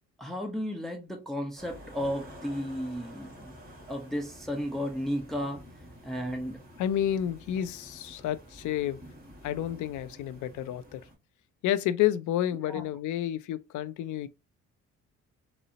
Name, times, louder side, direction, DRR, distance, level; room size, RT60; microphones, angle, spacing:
voice 1, 0.2-3.5 3.9-5.6 6.0-6.6 12.7-12.8, equal, ahead, 0.8 m, -33 dB
sound 1, 1.6-11.2, equal, 30° right, 1.9 m, -49 dB
voice 2, 6.8-9.0 9.4-11.0 11.6-14.3, left 11 dB, 75° left, 0.5 m, -30 dB
3.8 x 2.0 x 2.7 m
cardioid pair, 90°, 30 cm